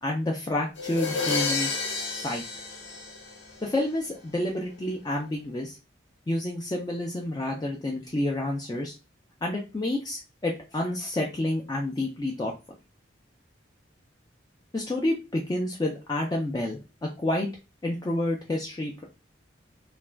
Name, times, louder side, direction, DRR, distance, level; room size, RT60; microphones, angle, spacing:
voice 1, 0.0-1.7 2.1-2.4 3.6-5.8 6.3-8.9 9.4-12.5 14.7-17.5 17.8-18.9, left 1 dB, 20° left, 0 dB, 0.3 m, -29 dB
sound 1, 0.8-3.7, left 4 dB, 75° left, 0.9 m, -30 dB
2.4 x 2.1 x 3.2 m, 0.29 s
head